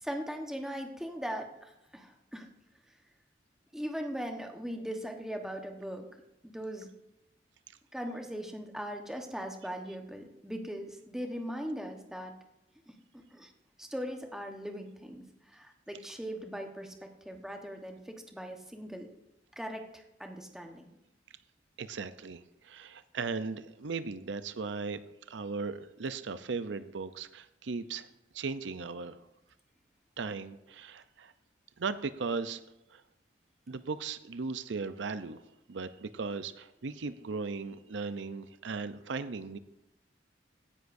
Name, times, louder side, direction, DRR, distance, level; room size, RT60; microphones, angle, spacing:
voice 1, 0.0-2.5 3.7-6.1 6.4-6.9 7.9-12.3 12.9-13.5 13.8-19.1 19.5-20.9, equal, 5° right, 3 dB, 1.1 m, -40 dB
voice 2, 21.8-28.1 28.3-29.3 30.2-31.3 31.8-32.6 32.9-33.0 33.7-39.6, right 4 dB, 75° right, 12 dB, 0.6 m, -37 dB
16.0 x 10.0 x 2.6 m, 0.90 s
head